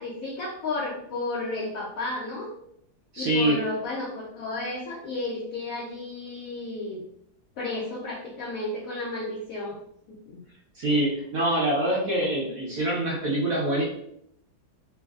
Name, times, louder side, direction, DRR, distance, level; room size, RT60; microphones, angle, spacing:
voice 1, 0.0-2.5 3.2-7.0 7.6-9.8 10.1-10.4, left 2 dB, 90° left, -4 dB, 0.7 m, -33 dB
voice 2, 3.1-3.6 10.8-13.8, right 1 dB, 65° right, -5 dB, 0.9 m, -25 dB
3.1 x 2.0 x 2.3 m, 0.73 s
omnidirectional pair, 2.1 m